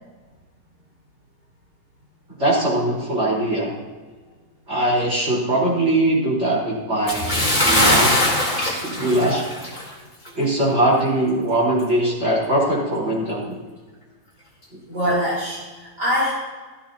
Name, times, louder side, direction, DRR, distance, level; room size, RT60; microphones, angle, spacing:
voice 1, 2.4-3.7 4.7-8.2 8.6-9.4 10.3-13.6 14.7-14.8, right 1 dB, 40° right, -5 dB, 4.7 m, -21 dB
Bathtub (filling or washing) / Splash splatter, 7.1-9.9 10.3-10.4 11.0-11.1, left 1 dB, 20° left, 3.5 m, -21 dB
voice 2, 8.9-9.4 14.9-16.3, equal, 75° right, -8 dB, 3.8 m, -24 dB
16.0 x 14.0 x 2.9 m, 1.4 s
omnidirectional pair, 1.8 m